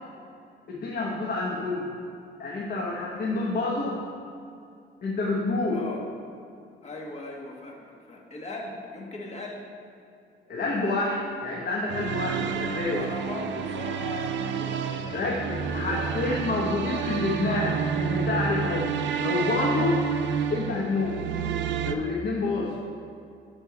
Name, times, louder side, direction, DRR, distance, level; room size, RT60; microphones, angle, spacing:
voice 1, 0.7-1.9 2.4-4.0 5.0-5.8 10.5-13.0 15.1-18.9 19.2-20.0 20.5-21.2 21.8-22.8, left 3 dB, 50° left, -3 dB, 1.1 m, -28 dB
voice 2, 5.7-6.0 6.8-9.6 12.9-16.3, left 2 dB, 35° left, -1 dB, 1.4 m, -39 dB
sound 1, 11.9-21.9, right 7 dB, 65° right, 0.5 m, -30 dB
7.7 x 4.5 x 5.8 m, 2.5 s
cardioid pair, 90°, 20 cm